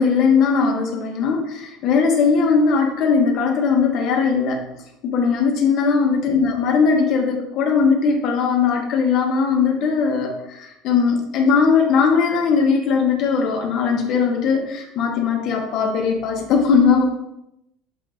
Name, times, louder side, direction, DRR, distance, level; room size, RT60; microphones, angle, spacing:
voice 1, 0.0-4.6 5.0-17.1, left 5 dB, 40° left, 2 dB, 1.1 m, -19 dB
7.8 x 2.7 x 4.9 m, 0.84 s
cardioid pair, 175°, 0 cm